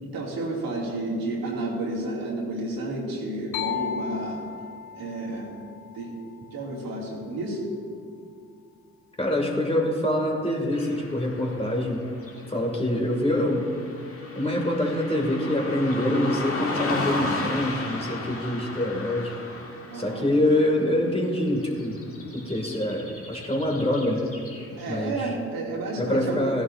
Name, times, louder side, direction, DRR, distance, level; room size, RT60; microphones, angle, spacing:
voice 1, 0.0-4.4 4.9-5.5 5.9-6.2 6.5-7.7 19.9-20.3 24.8-26.4, right 2 dB, 65° right, -4 dB, 2.7 m, -31 dB
sound 1, 3.5-7.2, left 8 dB, 75° left, 0.7 m, -36 dB
voice 2, 9.2-12.0 12.5-13.7 14.3-19.4 19.9-22.0 22.3-24.3 24.9-25.3 26.0-26.6, left 1 dB, 15° left, 0 dB, 2.4 m, -25 dB
Car passing by / Traffic noise roadway noise, 10.7-25.0, left 2 dB, 35° left, 2.1 m, -36 dB
16.5 x 11.0 x 2.7 m, 2.2 s
hypercardioid pair, 45°, 37 cm